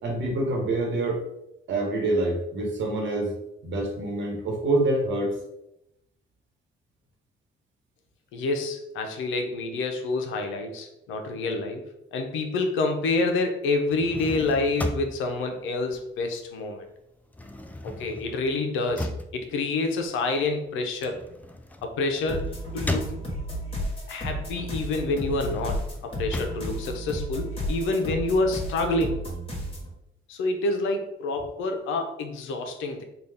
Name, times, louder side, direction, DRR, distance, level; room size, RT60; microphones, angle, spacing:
voice 1, 0.0-1.2 1.7-3.3 3.6-5.4, right 2 dB, 70° right, -1 dB, 1.2 m, -26 dB
voice 2, 8.3-16.8 17.8-21.2 21.8-22.4 22.7-23.2 24.1-29.3 30.3-33.0, left 3 dB, 90° left, 5 dB, 0.6 m, -28 dB
sound 1, 13.8-16.6 16.9-23.7 24.2-27.7, left 1 dB, 10° left, 0.3 m, -36 dB
sound 2, 22.3-29.9, equal, 30° left, 1.4 m, -33 dB
3.8 x 2.4 x 3.5 m, 0.84 s
cardioid pair, 90°, 20 cm